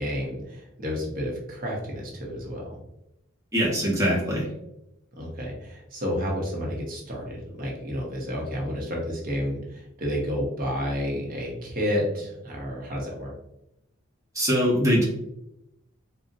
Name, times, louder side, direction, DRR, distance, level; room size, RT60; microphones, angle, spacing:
voice 1, 0.0-2.8 5.2-13.3, equal, 45° right, -2 dB, 0.8 m, -30 dB
voice 2, 3.5-4.5 14.3-15.1, equal, 15° right, -5 dB, 0.9 m, -22 dB
3.9 x 2.1 x 2.5 m, 0.85 s
head